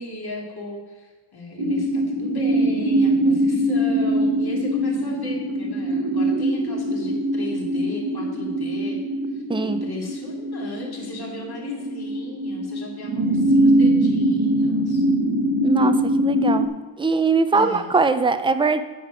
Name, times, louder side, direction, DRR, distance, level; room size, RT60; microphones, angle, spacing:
voice 1, 0.0-9.0 9.3-15.1 17.5-17.9, left 1 dB, 50° left, -2 dB, 2.2 m, -36 dB
sound 1, 1.6-16.7, right 1 dB, 55° right, 1.1 m, -22 dB
voice 2, 9.5-9.8 15.6-16.7 17.0-18.8, right 4 dB, 10° right, 10 dB, 0.4 m, -21 dB
9.0 x 6.6 x 4.9 m, 1.4 s
cardioid pair, 100°, 49 cm